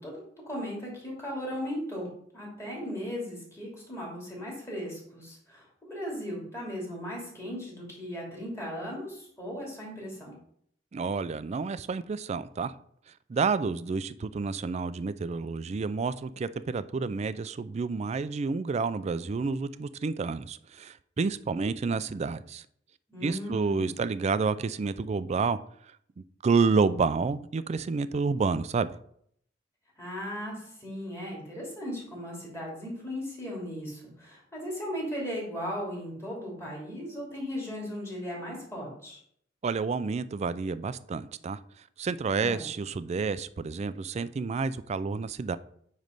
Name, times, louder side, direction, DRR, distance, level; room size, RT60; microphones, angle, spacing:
voice 1, 0.0-2.1 2.3-10.3 23.1-24.0 30.0-39.2 42.3-42.7, equal, 15° left, -3 dB, 2.9 m, -37 dB
voice 2, 10.9-12.7 13.3-22.6 23.2-25.6 26.2-28.9 39.6-41.6 42.0-45.6, right 4 dB, 35° right, 15 dB, 0.3 m, -29 dB
9.1 x 3.2 x 5.2 m, 0.67 s
head